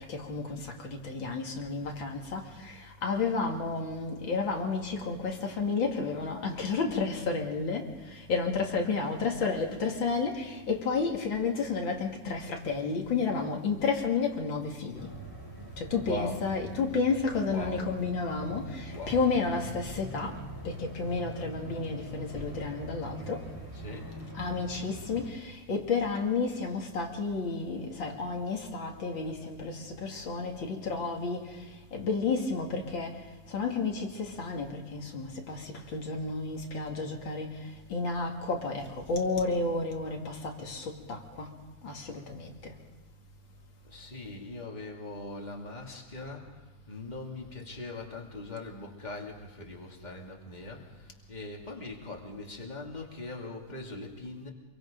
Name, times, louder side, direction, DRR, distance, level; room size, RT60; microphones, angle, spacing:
voice 1, 0.0-15.1 15.8-23.5 24.3-31.6 31.9-33.2 33.5-41.5 41.8-42.8, left 4 dB, 85° left, 3.0 m, -31 dB
sound 1, 14.9-25.3, right 1 dB, 10° right, 3.6 m, -43 dB
voice 2, 16.1-16.5 17.5-17.8 18.9-19.2 23.7-24.1 43.8-46.5 46.9-54.5, left 2 dB, 20° left, 2.7 m, -41 dB
26.5 x 23.5 x 5.2 m
omnidirectional pair, 2.0 m